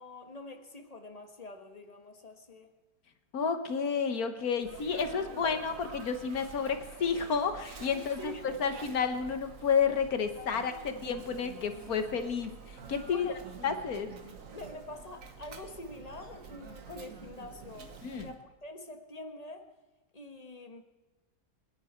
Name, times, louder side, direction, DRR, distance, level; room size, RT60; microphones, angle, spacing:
voice 1, 0.0-2.7 5.1-5.3 7.9-8.5 10.4-10.8 13.1-13.4 14.5-19.7 20.1-20.8, left 2 dB, 25° left, 6 dB, 1.4 m, -46 dB
voice 2, 3.3-8.3 8.6-13.3 13.6-14.1 18.0-18.3, left 6 dB, 60° left, 9 dB, 1.5 m, -31 dB
Sneeze, 4.6-18.4, right 5 dB, 55° right, 1.6 m, -48 dB
28.0 x 10.5 x 4.4 m, 1.2 s
omnidirectional pair, 1.8 m